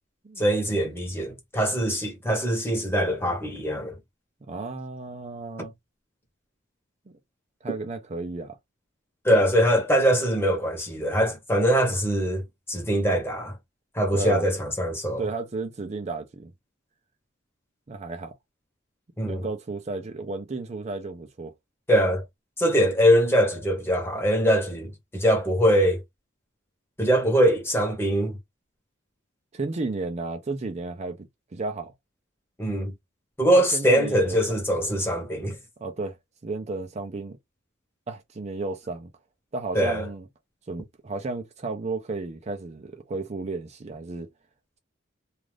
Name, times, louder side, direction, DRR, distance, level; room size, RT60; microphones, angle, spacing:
voice 1, 0.4-3.9 9.2-13.6 13.9-15.3 19.2-19.4 21.9-22.2 22.6-26.0 27.0-28.4 32.6-32.9 33.4-35.6 39.7-40.1, equal, 10° left, 1.0 m, -22 dB
voice 2, 4.5-5.7 7.1-7.2 7.6-8.6 14.1-14.5 15.2-16.5 17.9-18.3 19.2-21.5 29.5-31.9 33.5-34.6 35.8-36.2 36.4-37.4 38.1-39.1 39.5-40.3 40.7-44.3, right 3 dB, 35° right, 0.5 m, -33 dB
2.4 x 2.4 x 3.2 m
head